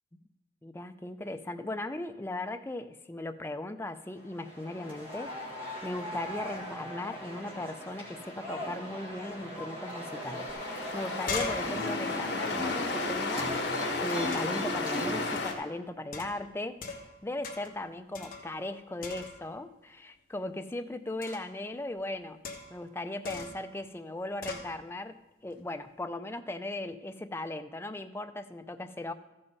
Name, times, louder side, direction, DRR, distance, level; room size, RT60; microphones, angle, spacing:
voice 1, 0.6-5.3 5.8-10.5 10.9-13.5 14.0-16.8 17.2-22.4 22.7-25.2 25.4-29.1, left 2 dB, 15° left, 8 dB, 0.4 m, -38 dB
sound 1, 4.3-15.4, equal, 30° right, 1.6 m, -38 dB
sound 2, 9.9-15.5, left 4 dB, 70° left, 1.4 m, -34 dB
sound 3, 10.5-10.6 10.9-13.6 14.3-14.7 15.4-15.6 16.1-17.2 17.4-17.8 18.1-18.7 19.0-19.6 21.2-21.6 22.4-22.9 23.2-23.7 24.4-24.7, left 4 dB, 50° left, 1.2 m, -40 dB
14.0 x 5.5 x 5.3 m, 0.98 s
head